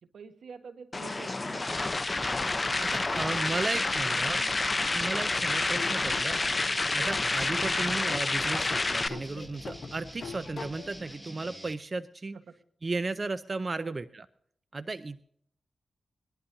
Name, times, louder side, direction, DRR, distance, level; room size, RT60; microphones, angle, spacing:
voice 1, 0.0-3.7 4.2-4.6 4.9-5.1 12.3-12.4 13.7-14.1, right 5 dB, 85° right, 9 dB, 1.4 m, -49 dB
sound 1, 0.9-9.1, left 2 dB, 35° left, 0.8 m, -29 dB
sound 2, 1.1-11.7, equal, 5° right, 1.9 m, -47 dB
voice 2, 2.8-4.4 4.9-6.4 6.9-12.4 12.8-14.3 14.7-15.2, right 3 dB, 45° right, 12 dB, 0.6 m, -35 dB
Laughter / Drum, 5.2-11.2, left 5 dB, 65° left, 1.2 m, -43 dB
21.0 x 11.5 x 2.7 m, 0.64 s
cardioid pair, 55°, 0 cm